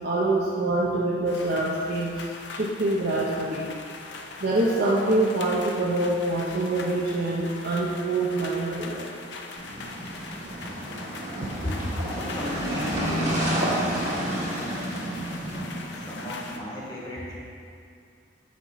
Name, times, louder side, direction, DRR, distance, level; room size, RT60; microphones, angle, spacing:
voice 1, 0.0-3.7 4.4-9.1 11.4-11.6, right 2 dB, 50° right, -5 dB, 0.6 m, -25 dB
sound 1, 1.3-16.6, left 3 dB, 60° left, 0.5 m, -41 dB
sound 2, 9.5-16.5, right 1 dB, 35° right, 1.3 m, -30 dB
voice 2, 11.6-13.9 14.7-15.1 15.9-17.3, left 1 dB, 20° left, -6 dB, 1.3 m, -35 dB
8.4 x 5.7 x 3.0 m, 2.4 s
head